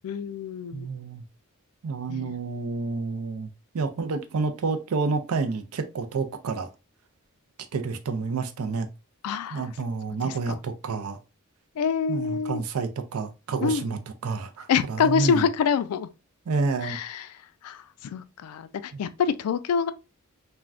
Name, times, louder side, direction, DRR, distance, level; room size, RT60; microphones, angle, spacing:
voice 1, 0.0-0.9 2.1-2.3 9.2-9.7 10.2-10.6 11.8-12.6 13.6-13.8 14.7-16.1 16.8-17.3 17.6-19.9, left 6 dB, 80° left, 0.3 m, -26 dB
voice 2, 0.7-1.2 1.8-3.5 3.7-6.7 7.7-8.9 9.5-11.2 12.1-15.5 16.5-17.0 18.9-19.0, right 4 dB, 70° right, 0.4 m, -29 dB
3.4 x 2.2 x 2.4 m
head